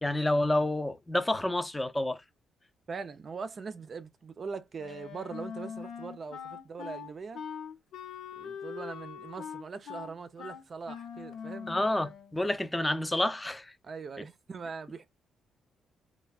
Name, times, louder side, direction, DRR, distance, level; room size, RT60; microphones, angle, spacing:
voice 1, 0.0-2.2 11.7-13.7, left 1 dB, 10° left, 0.5 m, -29 dB
voice 2, 2.9-7.4 8.3-11.7 13.8-15.1, right 5 dB, 40° right, 0.5 m, -41 dB
Wind instrument woodwind instrument, 4.8-12.4, left 7 dB, 80° left, 0.8 m, -42 dB
3.2 x 2.2 x 2.3 m
cardioid pair, 90°, 0 cm